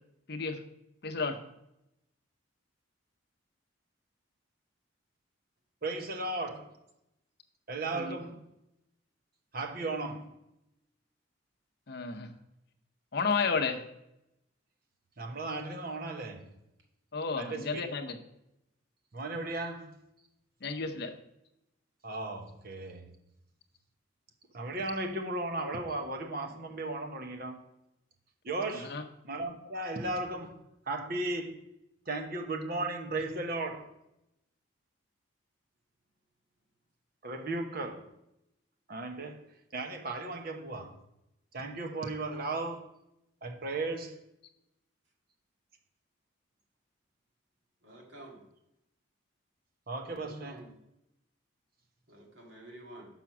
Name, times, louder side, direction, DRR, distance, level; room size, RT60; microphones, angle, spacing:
voice 1, 0.3-0.6 1.0-1.4 7.9-8.2 11.9-12.3 13.1-13.8 17.1-18.2 20.6-21.2 28.7-29.0, left 4 dB, 50° left, 0.7 m, -32 dB
voice 2, 5.8-6.8 7.7-8.4 9.5-10.3 15.2-16.5 17.4-17.8 19.1-19.9 22.0-23.1 24.5-27.6 28.4-29.0 29.2-31.6 32.1-33.9 37.2-38.1 38.9-39.4 39.7-41.0 41.5-42.8 43.4-44.2 49.9-50.7, right 2 dB, 45° right, 1.0 m, -36 dB
voice 3, 47.8-48.4 50.2-50.7 52.1-53.1, right 1 dB, 70° right, 1.9 m, -50 dB
6.1 x 5.7 x 5.8 m
head